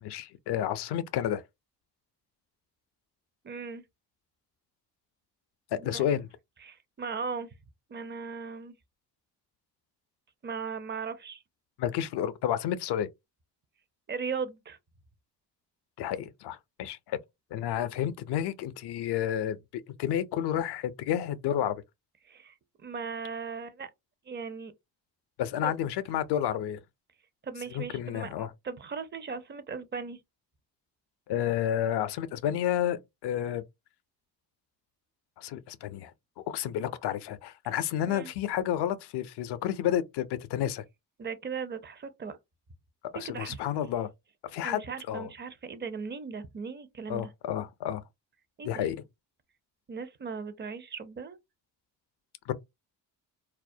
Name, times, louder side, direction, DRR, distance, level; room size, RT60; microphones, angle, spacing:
voice 1, 0.1-1.4 5.7-6.3 11.8-13.1 16.0-17.2 17.5-19.6 20.0-21.8 25.4-26.8 27.7-28.5 31.3-33.6 35.4-36.1 36.5-40.8 43.1-44.1 44.4-44.8 45.1-45.3 47.1-48.0 48.6-49.0 52.5-52.6, left 10 dB, 65° left, 0.5 m, -30 dB
voice 2, 3.4-3.8 5.8-6.1 6.6-7.5 7.9-8.8 10.4-11.4 14.1-14.8 22.2-23.9 24.3-24.7 25.6-25.7 27.4-30.2 38.1-38.3 41.2-42.4 43.2-43.6 44.6-47.3 48.6-48.9 49.9-51.4, right 5 dB, 25° right, 0.5 m, -38 dB
2.3 x 2.0 x 2.6 m
supercardioid pair, 60°, 44 cm